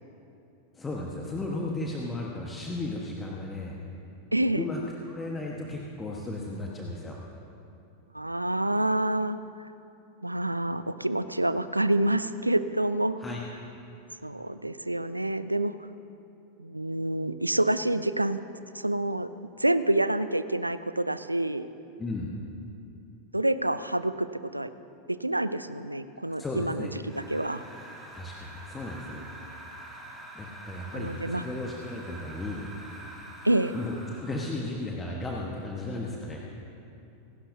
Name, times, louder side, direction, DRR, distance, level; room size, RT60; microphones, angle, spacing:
voice 1, 0.7-3.8 4.5-4.8 5.1-7.2 13.2-13.4 22.0-22.4 26.4-26.9 28.1-29.2 30.3-32.7 33.7-36.4, left 2 dB, 15° left, -1 dB, 1.3 m, -35 dB
voice 2, 4.3-4.7 8.1-9.7 10.2-13.2 14.2-15.7 16.6-18.4 18.7-19.3 19.6-21.7 23.3-24.3 24.5-24.7 25.2-26.9 27.1-27.6 30.9-31.4 33.4-33.7, right 1 dB, 85° right, 13 dB, 0.4 m, -27 dB
sound 1, 27.1-34.7, right 1 dB, 10° right, 2.6 m, -46 dB
25.5 x 11.5 x 2.7 m, 2.8 s
figure-of-eight pair, 90°, 0 cm